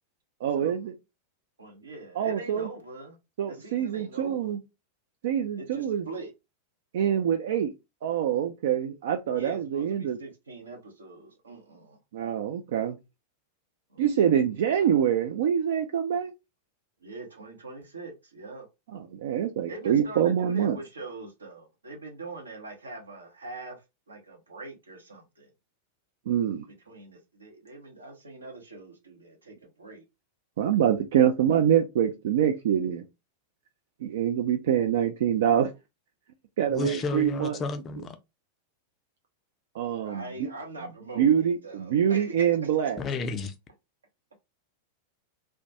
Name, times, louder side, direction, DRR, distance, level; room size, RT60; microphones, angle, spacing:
voice 1, 0.4-1.0 2.2-2.7 3.4-4.6 5.2-6.0 6.9-7.7 8.0-10.2 12.1-13.0 14.0-16.3 18.9-20.8 26.3-26.7 30.6-33.0 34.0-35.7 36.6-37.6 39.7-40.3 41.2-43.0, right 9 dB, 55° right, 0.3 m, -25 dB
voice 2, 1.6-3.2 3.5-4.6 5.5-6.3 9.3-12.0 13.9-14.1 17.0-18.7 19.7-25.5 26.7-30.0 36.7-37.1 40.0-42.7, right 2 dB, 75° right, 0.7 m, -43 dB
voice 3, 36.7-38.2 43.0-43.5, left 4 dB, 25° left, 0.4 m, -32 dB
2.2 x 2.1 x 2.7 m
figure-of-eight pair, 90°, 0 cm